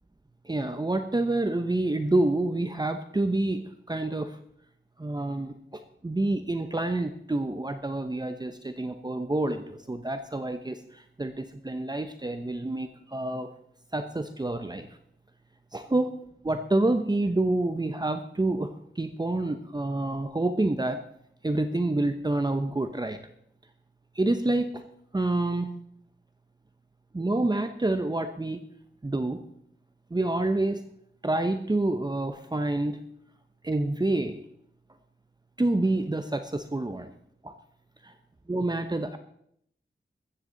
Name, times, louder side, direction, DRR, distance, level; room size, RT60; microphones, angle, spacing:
voice 1, 0.4-4.4 5.0-13.5 13.9-14.9 15.7-21.0 21.4-23.2 24.2-24.8 25.1-25.7 27.1-28.6 29.0-29.4 30.1-30.9 31.2-33.0 33.6-34.3 35.6-37.1 37.4-37.5 38.0-38.1 38.5-39.2, right 2 dB, 20° right, 8 dB, 0.8 m, -28 dB
15.0 x 13.5 x 4.0 m, 0.71 s
wide cardioid pair, 90°, 19 cm